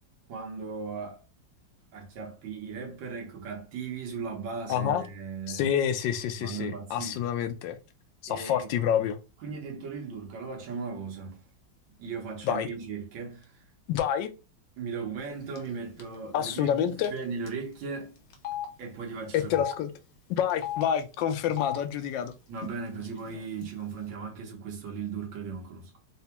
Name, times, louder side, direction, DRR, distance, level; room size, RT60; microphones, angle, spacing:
voice 1, 0.3-1.2 1.9-5.7 6.4-7.2 8.3-8.7 9.4-11.4 12.0-13.7 14.8-18.2 18.8-19.5 22.5-25.9, right 5 dB, 85° right, 1.8 m, -37 dB
voice 2, 4.7-5.0 5.5-7.8 8.2-9.2 12.4-12.7 13.9-14.3 16.3-17.1 19.3-19.9 20.3-22.3, left 9 dB, 80° left, 1.2 m, -28 dB
Telephone, 15.6-15.7 16.0-16.1 17.0-17.2 17.5-17.6 18.3-18.7 19.4-19.7 20.5-20.8 21.4-21.8 22.6-22.7 23.0-23.6, left 12 dB, 60° left, 0.7 m, -35 dB
4.1 x 2.2 x 2.9 m
omnidirectional pair, 2.1 m